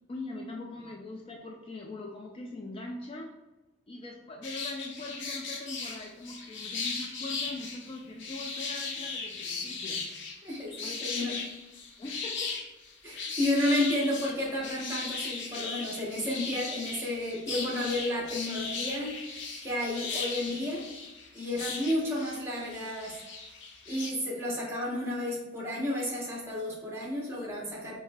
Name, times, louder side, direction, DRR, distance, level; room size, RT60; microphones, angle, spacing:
voice 1, 0.1-3.3 3.9-10.1 10.8-11.0 11.3-11.4 12.0-12.6, left 2 dB, 30° left, 0 dB, 0.3 m, -41 dB
sound 1, 4.4-24.1, left 4 dB, 65° left, 0.6 m, -37 dB
voice 2, 10.4-11.5 13.0-20.8 21.3-23.2 23.9-28.0, left 1 dB, 15° right, -4 dB, 1.0 m, -32 dB
5.4 x 2.7 x 2.3 m, 1.1 s
head